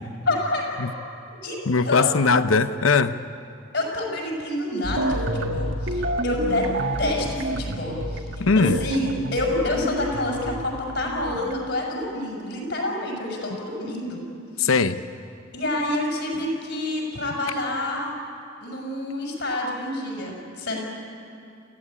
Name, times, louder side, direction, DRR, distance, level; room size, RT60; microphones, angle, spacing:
voice 1, 0.2-0.9 1.4-2.2 3.7-5.2 5.4-6.7 7.0-14.2 14.6-14.7 15.5-18.1 18.6-20.8, left 1 dB, 60° left, 0 dB, 5.9 m, -28 dB
voice 2, 1.7-3.2 8.4-8.8 14.6-15.0, left 4 dB, 80° left, 11 dB, 0.7 m, -20 dB
sound 1, 4.8-11.5, right 1 dB, 65° right, 1.4 m, -29 dB
28.0 x 15.5 x 9.8 m, 2.6 s
head